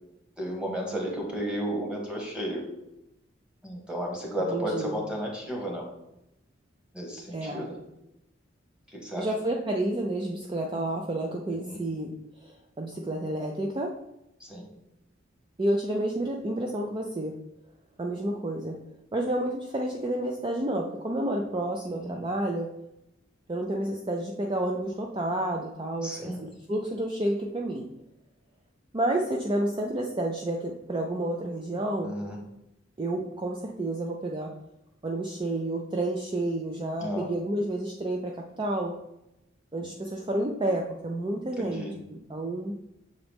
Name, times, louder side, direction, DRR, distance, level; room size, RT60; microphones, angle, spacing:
voice 1, 0.4-2.6 3.6-5.9 6.9-7.7 8.9-9.3 11.5-11.8 14.4-14.7 21.9-22.2 26.0-26.4 32.0-32.4 37.0-37.3 41.6-42.0, equal, 5° right, -1 dB, 1.4 m, -33 dB
voice 2, 4.5-5.0 7.3-7.7 9.2-12.1 12.4-14.0 15.6-17.4 18.0-18.8 19.1-22.7 23.5-27.9 28.9-32.1 33.0-34.5 35.0-38.9 39.7-42.8, right 1 dB, 25° right, 0 dB, 0.5 m, -30 dB
7.0 x 3.9 x 3.5 m, 0.87 s
head